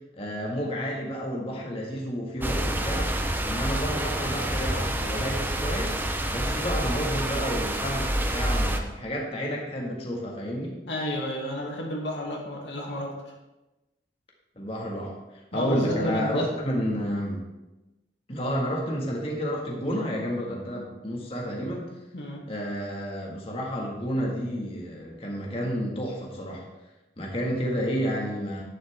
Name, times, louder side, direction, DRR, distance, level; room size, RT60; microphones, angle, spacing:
voice 1, 0.1-3.2 3.4-6.0 6.3-10.8 14.6-17.4 18.3-21.9 22.5-26.7 27.2-28.6, equal, 35° left, -2 dB, 1.9 m, -30 dB
sound 1, 2.4-8.8, right 1 dB, 10° right, 0.8 m, -28 dB
voice 2, 10.9-13.2 15.5-16.5 22.1-22.5, left 1 dB, 85° left, -1 dB, 2.4 m, -31 dB
11.0 x 10.5 x 3.6 m, 1.0 s
head